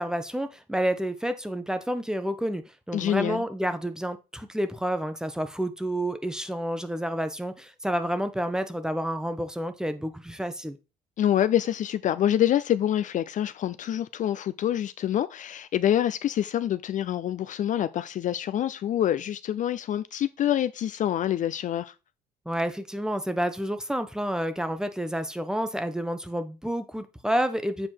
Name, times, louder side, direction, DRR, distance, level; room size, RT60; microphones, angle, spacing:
voice 1, 0.0-10.8 22.5-27.9, equal, 5° right, 0.9 m, -29 dB
voice 2, 2.9-3.4 11.2-21.9, left 11 dB, 50° left, 0.4 m, -26 dB
7.7 x 4.4 x 4.5 m
cardioid pair, 110°, 17 cm